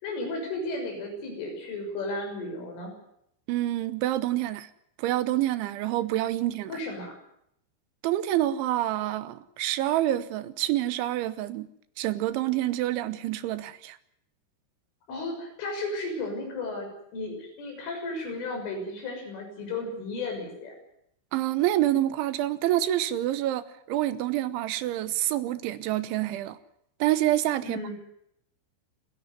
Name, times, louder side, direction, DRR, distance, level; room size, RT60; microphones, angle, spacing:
voice 1, 0.0-2.9 6.7-7.1 15.1-20.7 27.6-27.9, left 2 dB, 80° left, 9.1 m, -34 dB
voice 2, 3.5-4.7 5.0-6.7 8.0-11.7 12.0-14.0 21.3-26.6 27.0-27.8, right 14 dB, 80° right, 3.2 m, -27 dB
29.0 x 11.5 x 9.6 m
omnidirectional pair, 5.6 m